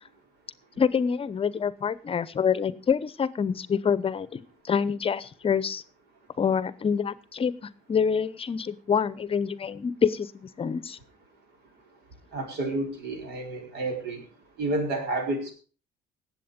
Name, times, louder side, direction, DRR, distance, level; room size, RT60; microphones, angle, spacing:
voice 1, 0.8-4.4 4.6-5.8 6.4-11.0, left 6 dB, 35° left, 17 dB, 0.7 m, -26 dB
voice 2, 12.3-14.2 14.6-15.5, right 2 dB, 80° right, 3 dB, 4.7 m, -30 dB
19.0 x 7.9 x 5.2 m, 0.37 s
cardioid pair, 110°, 17 cm